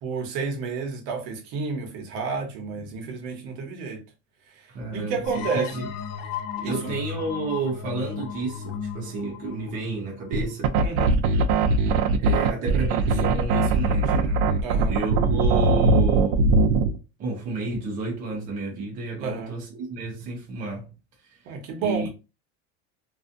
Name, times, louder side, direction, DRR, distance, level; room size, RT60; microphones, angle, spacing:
voice 1, 0.0-4.0 4.6-4.7 4.9-5.7 6.6-6.8 10.8-11.2 14.6-14.9 19.2-19.5 21.5-22.1, right 4 dB, 60° right, 0.9 m, -30 dB
voice 2, 4.7-5.9 6.6-10.8 12.2-14.5 14.9-16.5 17.2-20.9 21.3-21.4 21.8-22.1, right 2 dB, 25° right, 0.5 m, -31 dB
sound 1, 5.2-10.7, left 7 dB, 60° left, 0.5 m, -35 dB
sound 2, 10.3-17.0, right 3 dB, 80° right, 0.5 m, -20 dB
2.5 x 2.3 x 2.5 m
cardioid pair, 165°, 31 cm